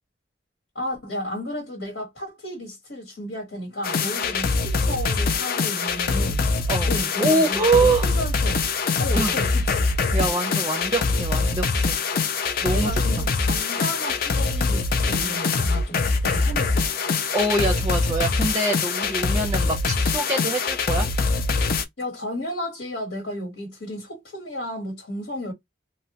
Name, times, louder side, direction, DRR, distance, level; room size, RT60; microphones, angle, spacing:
voice 1, 0.7-6.4 6.9-9.9 12.7-16.9 22.0-25.5, left 1 dB, 75° left, 1.2 m, -33 dB
sound 1, 3.8-21.8, left 4 dB, 50° left, 0.5 m, -23 dB
voice 2, 7.2-8.1 9.1-9.4 10.1-12.0 12.6-13.0 17.3-21.1, right 2 dB, 20° right, 0.5 m, -24 dB
3.1 x 2.1 x 2.8 m
head